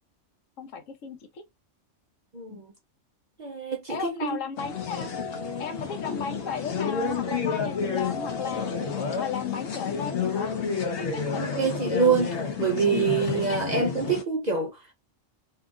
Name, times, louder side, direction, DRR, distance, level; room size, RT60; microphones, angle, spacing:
voice 1, 0.6-1.4 2.5-2.6 3.9-5.1 5.6-8.7 9.2-10.5 11.1-11.4 13.2-13.6, left 6 dB, 85° left, 1.1 m, -35 dB
voice 2, 2.3-2.7 3.4-4.4 11.4-14.9, right 5 dB, 50° right, 0.5 m, -26 dB
sound 1, 4.6-14.2, left 5 dB, 65° left, 0.9 m, -30 dB
2.8 x 2.4 x 2.4 m
omnidirectional pair, 1.3 m